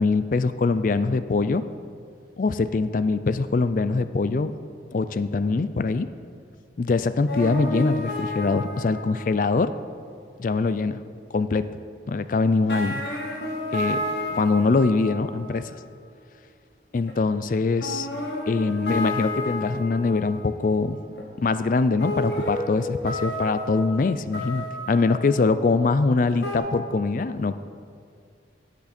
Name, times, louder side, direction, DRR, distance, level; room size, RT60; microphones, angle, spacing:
voice 1, 0.0-1.6 2.4-4.5 4.9-6.1 6.8-9.7 10.4-11.0 11.3-11.7 12.1-13.0 13.7-14.0 14.3-15.8 16.9-18.1 18.5-21.0 21.4-27.6, left 3 dB, 45° left, 12 dB, 0.4 m, -23 dB
sound 1, 7.3-9.5 12.3-12.4 12.7-15.7 17.1-17.2 17.8-20.6 21.1-21.2 22.0-25.6 26.4-26.6, left 1 dB, 70° left, 2.0 m, -31 dB
17.0 x 8.3 x 4.3 m, 2.3 s
head